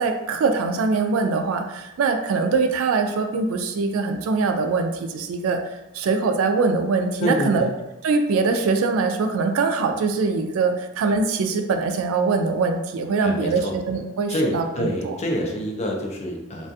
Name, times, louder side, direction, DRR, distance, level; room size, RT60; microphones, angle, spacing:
voice 1, 0.0-5.6 5.9-7.7 8.0-15.2, right 4 dB, 75° right, 6 dB, 0.3 m, -23 dB
voice 2, 7.2-7.7 13.2-13.8 14.3-16.7, equal, 35° left, 0 dB, 0.4 m, -26 dB
2.4 x 2.3 x 2.6 m, 0.96 s
head